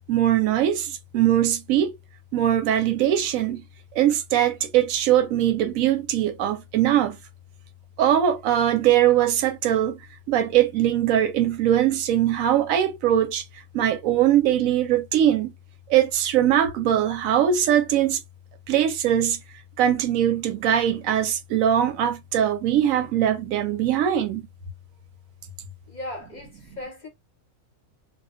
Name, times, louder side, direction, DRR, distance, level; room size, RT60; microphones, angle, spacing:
voice 1, 0.1-1.9 2.3-3.6 3.9-7.2 8.0-10.0 10.3-13.4 13.7-15.5 15.9-18.2 18.7-19.4 19.8-24.5, right 11 dB, 85° right, 1.0 m, -21 dB
voice 2, 25.9-27.1, left 1 dB, 45° left, 0.7 m, -37 dB
2.3 x 2.2 x 2.4 m
omnidirectional pair, 1.4 m